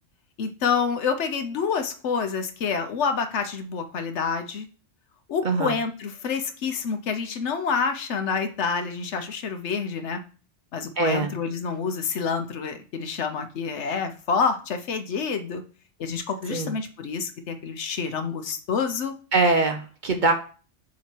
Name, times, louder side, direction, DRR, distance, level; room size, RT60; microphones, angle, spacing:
voice 1, 0.4-4.7 5.3-10.2 10.7-15.6 16.0-19.1, left 5 dB, 70° left, 8 dB, 1.0 m, -28 dB
voice 2, 5.4-5.8 11.0-11.3 16.5-16.7 19.3-20.3, right 3 dB, 50° right, 6 dB, 0.7 m, -22 dB
7.2 x 2.9 x 4.5 m, 0.37 s
omnidirectional pair, 1.2 m